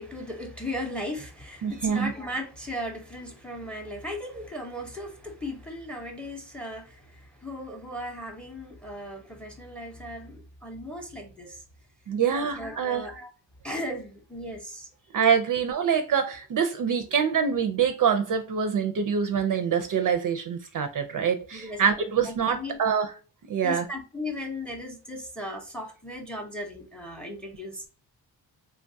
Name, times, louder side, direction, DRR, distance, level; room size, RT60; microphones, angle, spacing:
voice 1, 0.0-11.6 12.3-13.3 13.6-14.9 21.5-22.8 23.6-27.9, left 1 dB, ahead, 0.6 m, -37 dB
voice 2, 1.6-2.1 12.1-13.1 15.1-23.1 23.5-23.9, right 7 dB, 50° right, 0.4 m, -25 dB
3.3 x 2.3 x 2.6 m
wide cardioid pair, 125°, 44 cm